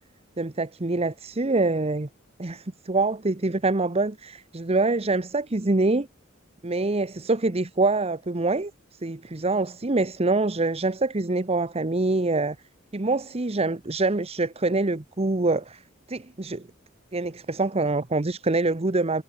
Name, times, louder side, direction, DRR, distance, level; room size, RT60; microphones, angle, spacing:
voice 1, 0.4-2.1 2.4-6.1 6.6-12.6 12.9-15.8 16.1-16.7 17.1-19.2, right 2 dB, 30° right, 0.9 m, -25 dB
head